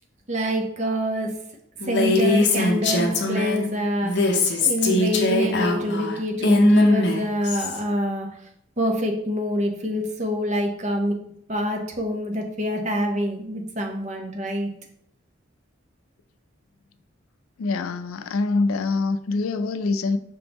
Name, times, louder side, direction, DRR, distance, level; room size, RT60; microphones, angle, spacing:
voice 1, 0.3-1.3 1.9-4.3 4.6-8.3 8.8-11.1 11.5-14.7, equal, 35° right, 0.7 m, -26 dB
Female speech woman speaking, 1.8-3.7 4.0-7.8, left 2 dB, 55° left, 0.7 m, -20 dB
voice 2, 17.6-20.2, left 3 dB, 90° left, 0.4 m, -24 dB
5.1 x 3.5 x 2.9 m
head